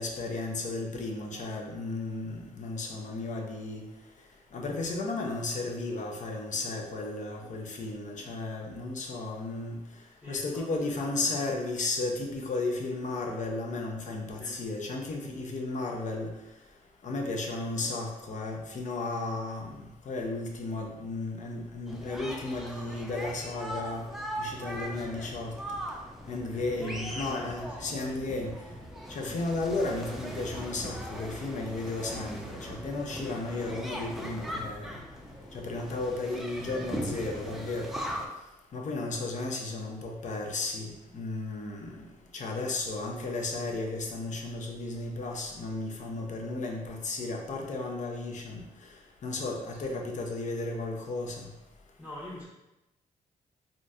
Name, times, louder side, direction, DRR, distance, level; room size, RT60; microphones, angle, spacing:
voice 1, 0.0-3.8 4.5-9.8 10.3-16.3 17.0-24.1 24.4-25.5 26.3-28.5 29.1-35.0 35.5-37.9 38.7-42.1 42.3-48.6 49.2-51.5, left 2 dB, 60° left, 1 dB, 0.6 m, -34 dB
voice 2, 10.2-10.7 11.0-11.3 14.4-14.6 24.7-25.2 26.5-28.2 29.2-29.4 49.8-50.0 52.0-52.5, equal, 20° left, -7 dB, 0.9 m, -45 dB
sound 1, 21.9-38.3, equal, ahead, 0.5 m, -39 dB
3.7 x 2.6 x 2.4 m, 0.95 s
cardioid pair, 70°, 15 cm